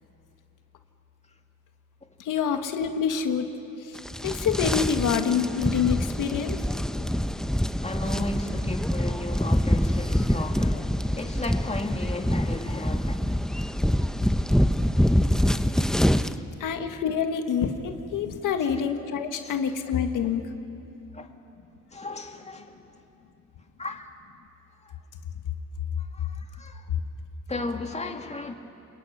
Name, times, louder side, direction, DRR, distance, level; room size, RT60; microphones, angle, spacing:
voice 1, 2.2-3.5 3.8-4.0 4.2-6.6 16.6-20.4, left 7 dB, 90° left, 1.8 m, -26 dB
sound 1, 4.0-16.3, equal, ahead, 0.9 m, -25 dB
voice 2, 7.8-13.2 14.0-14.1 16.4-16.5 18.6-18.9 19.4-19.6 20.2-20.3 21.1-21.3 21.9-22.8 23.8-24.1 24.8-25.0 26.0-26.9 27.5-28.5, left 2 dB, 20° left, 2.3 m, -35 dB
29.5 x 21.0 x 9.7 m
cardioid pair, 85°, 31 cm